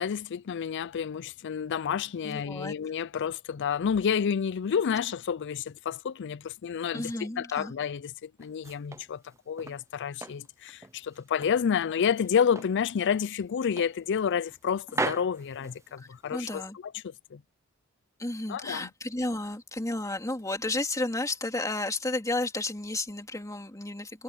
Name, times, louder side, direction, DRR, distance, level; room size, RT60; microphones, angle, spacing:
voice 1, 0.0-7.1 7.4-16.6 17.0-17.4 18.5-18.9, left 7 dB, 55° left, 0.4 m, -29 dB
voice 2, 2.2-2.7 6.9-7.7 16.0-16.8 18.2-24.2, left 2 dB, 15° left, 2.9 m, -32 dB
sound 1, 8.4-9.8 10.2-11.6 12.0-12.8 13.1-13.3 13.8-14.6 14.9-16.3, right 3 dB, 15° right, 0.6 m, -37 dB
head